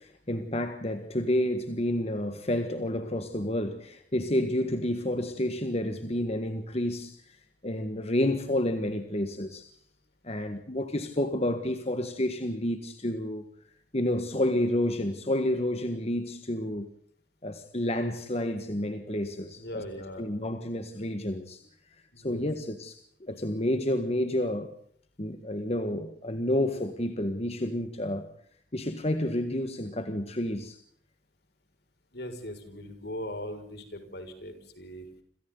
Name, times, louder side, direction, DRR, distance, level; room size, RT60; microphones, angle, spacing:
voice 1, 0.0-9.7 10.2-13.4 13.9-16.9 17.4-19.8 20.2-24.7 25.2-28.3 28.7-30.8, left 1 dB, 35° left, 1.7 m, -30 dB
voice 2, 19.6-20.3 22.1-22.4 32.1-35.1, equal, 65° left, 6.3 m, -39 dB
29.0 x 27.5 x 4.0 m
head